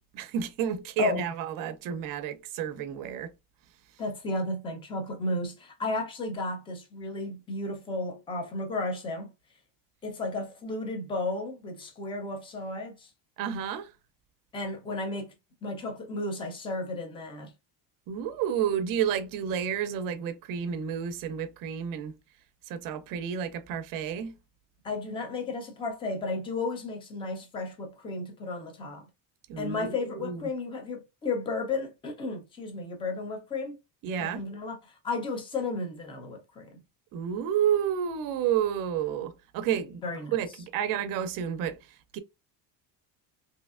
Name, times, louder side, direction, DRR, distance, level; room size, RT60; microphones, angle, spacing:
voice 1, 0.1-3.3 13.4-13.9 18.1-22.1 22.7-24.3 29.5-30.5 34.0-34.4 37.1-40.0 40.3-41.8 42.1-42.2, right 8 dB, 50° right, 0.5 m, -30 dB
voice 2, 4.0-9.3 10.0-13.1 14.5-15.3 15.6-17.5 24.8-29.0 29.6-33.7 34.2-34.8 35.0-36.7 40.0-40.3, left 2 dB, 15° left, 0.4 m, -33 dB
3.2 x 2.7 x 2.4 m
cardioid pair, 175°, 44 cm